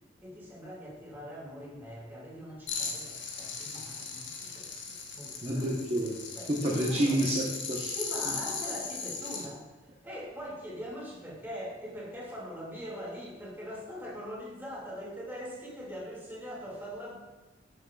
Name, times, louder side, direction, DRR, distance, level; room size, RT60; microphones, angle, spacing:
voice 1, 0.2-5.7 6.3-7.2 7.9-9.6 10.0-17.2, equal, 10° right, -6 dB, 2.2 m, -42 dB
sound 1, 2.7-9.5, left 5 dB, 70° left, 1.1 m, -38 dB
voice 2, 5.4-6.1 6.5-8.0, right 1 dB, 30° right, -5 dB, 0.9 m, -29 dB
12.5 x 6.4 x 2.4 m, 1.2 s
head